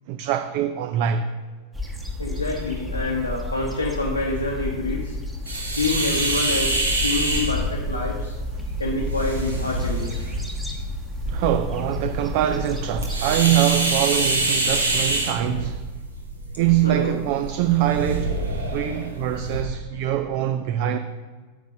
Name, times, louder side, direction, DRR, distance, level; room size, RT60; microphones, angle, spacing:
voice 1, 0.1-1.3 11.3-15.8 16.6-18.3 18.7-21.0, right 12 dB, 45° right, 0.4 m, -23 dB
sound 1, 1.7-13.2, left 2 dB, 10° right, 1.2 m, -31 dB
voice 2, 2.2-5.1 5.7-8.3 8.8-10.1 16.8-17.2 19.3-19.5, left 2 dB, 85° left, 1.0 m, -27 dB
sound 2, 5.5-19.6, right 2 dB, 75° right, 1.4 m, -27 dB
9.4 x 3.9 x 6.5 m
figure-of-eight pair, 90°, 0 cm